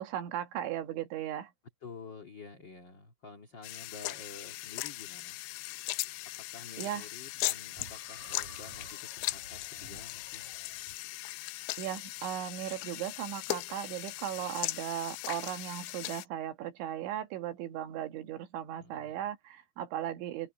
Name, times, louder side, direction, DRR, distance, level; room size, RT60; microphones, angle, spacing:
voice 1, 0.0-1.5 6.8-7.1 11.8-20.5, right 11 dB, 85° right, 4.0 m, -37 dB
voice 2, 1.8-5.4 6.5-10.5 14.3-14.7 18.8-19.3, left 4 dB, 35° left, 1.9 m, -50 dB
sound 1, 3.6-16.3, left 19 dB, 80° left, 2.8 m, -39 dB
sound 2, 7.8-11.0, right 4 dB, 40° right, 5.7 m, -53 dB
omnidirectional pair, 5.2 m